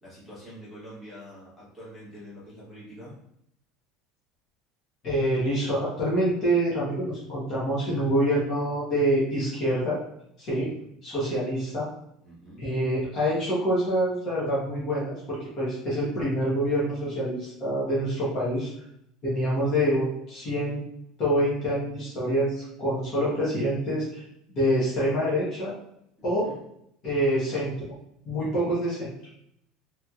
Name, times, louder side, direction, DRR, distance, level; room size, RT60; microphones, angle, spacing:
voice 1, 0.0-3.1 10.6-10.9 12.2-12.6 26.4-26.6, equal, 10° left, -9 dB, 1.2 m, -45 dB
voice 2, 5.0-10.0 10.4-10.7 11.0-11.9 12.6-18.7 19.2-20.8 21.2-24.2 24.6-25.7 26.2-26.5 27.0-27.7 28.2-29.1, equal, 35° left, -7 dB, 1.0 m, -26 dB
3.4 x 2.8 x 2.4 m, 0.74 s
cardioid pair, 175°, 0 cm